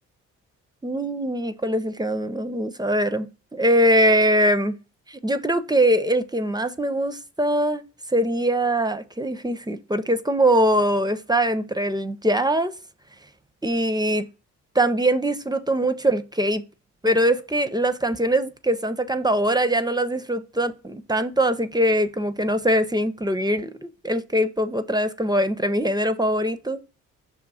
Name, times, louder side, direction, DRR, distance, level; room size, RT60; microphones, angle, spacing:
voice 1, 0.8-3.3 3.5-4.8 5.1-7.8 8.1-12.7 13.6-14.3 14.7-16.6 17.0-26.8, right 1 dB, 15° right, 0.6 m, -22 dB
5.9 x 3.0 x 5.5 m
cardioid pair, 90°, 30 cm